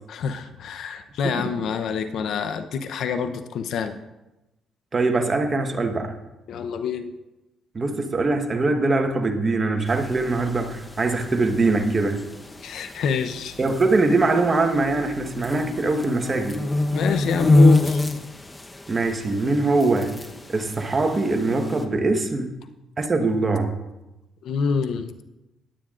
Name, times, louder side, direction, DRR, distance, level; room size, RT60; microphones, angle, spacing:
voice 1, 0.1-4.0 6.5-7.1 12.6-13.6 16.9-18.0 24.4-25.1, left 6 dB, 75° left, 9 dB, 0.7 m, -26 dB
voice 2, 1.2-1.6 4.9-6.1 7.7-12.2 13.6-16.7 18.9-20.2 20.5-22.6 23.0-23.8, right 3 dB, 30° right, 6 dB, 1.2 m, -22 dB
sound 1, 9.9-21.8, left 2 dB, 20° left, 0.9 m, -26 dB
19.0 x 9.0 x 2.5 m, 0.99 s
cardioid pair, 90°, 0 cm